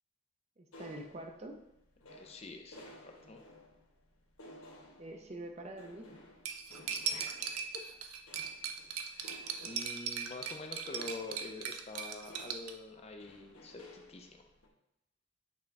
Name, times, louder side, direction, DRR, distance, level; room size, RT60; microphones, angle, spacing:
voice 1, 0.6-1.6 5.0-6.1, right 1 dB, 30° right, 3 dB, 0.5 m, -45 dB
sound 1, 0.7-14.7, left 1 dB, 75° left, 1.2 m, -56 dB
voice 2, 2.1-3.4 7.1-7.4 7.7-7.9 9.1-14.4, left 3 dB, 30° left, 4 dB, 0.4 m, -46 dB
Cutlery silverware, 6.4-12.7, right 7 dB, 85° right, 0.5 m, -39 dB
8.3 x 3.6 x 3.3 m, 0.80 s
head